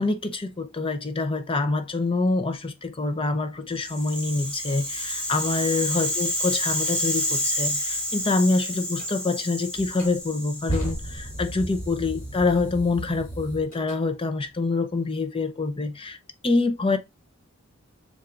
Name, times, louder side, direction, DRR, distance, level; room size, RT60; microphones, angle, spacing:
voice 1, 0.0-16.2 16.4-17.0, left 3 dB, 25° left, 0.7 m, -26 dB
Rattle (instrument), 3.7-11.9, equal, 5° left, 1.5 m, -29 dB
sound 1, 9.0-9.1 9.7-14.0, right 1 dB, 40° left, 2.4 m, -34 dB
7.2 x 2.5 x 2.5 m
head